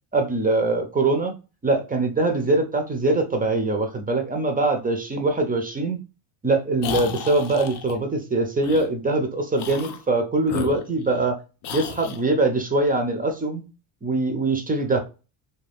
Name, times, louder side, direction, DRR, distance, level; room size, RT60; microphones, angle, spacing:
voice 1, 0.1-1.3 1.6-6.0 6.4-11.4 11.7-13.6 14.0-15.0, right 2 dB, 20° right, 5 dB, 0.5 m, -23 dB
sound 1, 6.8-8.0 8.6-8.9 9.5-10.0 10.4-11.3 11.6-12.2, left 7 dB, 55° left, 0.6 m, -33 dB
2.5 x 2.3 x 3.4 m, 0.31 s
cardioid pair, 100°, 50 cm